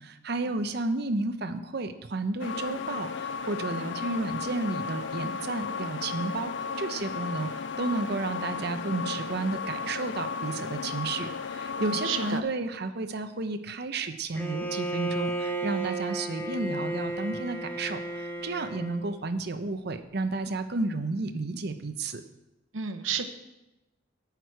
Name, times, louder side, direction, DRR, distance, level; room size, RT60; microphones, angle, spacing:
voice 1, 0.0-7.5 7.8-22.2, right 3 dB, 55° right, 9 dB, 0.7 m, -32 dB
sound 1, 2.4-12.4, left 5 dB, 65° left, 0.5 m, -34 dB
voice 2, 11.8-12.4 22.7-23.3, right 6 dB, 85° right, 8 dB, 0.9 m, -31 dB
Bowed string instrument, 14.3-19.1, right 2 dB, 10° left, 1.0 m, -33 dB
10.5 x 8.1 x 4.7 m, 0.97 s
head